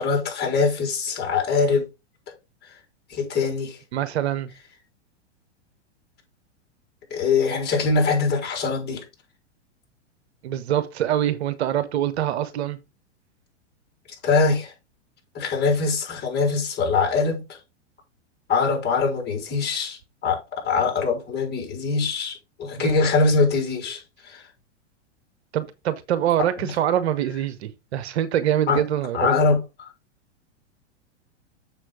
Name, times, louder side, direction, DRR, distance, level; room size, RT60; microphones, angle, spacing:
voice 1, 0.0-1.9 2.3-2.4 3.1-3.8 7.1-9.0 14.2-14.7 15.3-17.6 18.5-24.4 26.6-26.7 28.7-28.8 29.1-29.9, left 4 dB, 30° left, 4.4 m, -23 dB
voice 2, 3.9-4.5 10.4-12.8 22.8-22.9 25.5-29.3, right 11 dB, 65° right, 1.1 m, -24 dB
7.3 x 6.2 x 3.8 m
hypercardioid pair, 110°, 35 cm